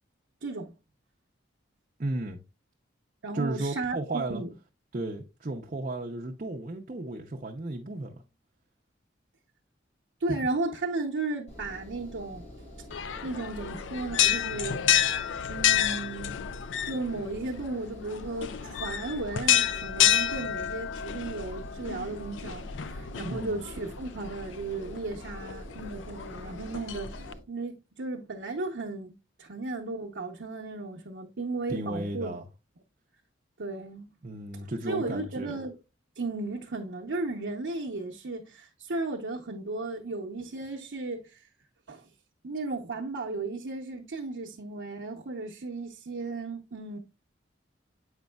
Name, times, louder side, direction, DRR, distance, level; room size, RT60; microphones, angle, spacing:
voice 1, 0.4-0.7 3.2-4.5 10.2-12.5 13.2-14.9 15.5-16.4 16.9-27.2 27.5-32.4 33.6-34.1 34.9-35.7 36.2-41.4 41.9-42.0 42.4-47.0, right 3 dB, 85° right, 0.8 m, -35 dB
voice 2, 2.0-2.4 3.3-4.4 4.9-8.2 23.3-23.6 31.7-32.5 34.2-35.6, right 2 dB, 40° right, 0.6 m, -34 dB
Engine, 11.5-27.4, equal, 40° left, 2.9 m, -46 dB
sound 1, 12.9-27.3, left 10 dB, 85° left, 0.4 m, -30 dB
8.0 x 5.2 x 2.3 m
head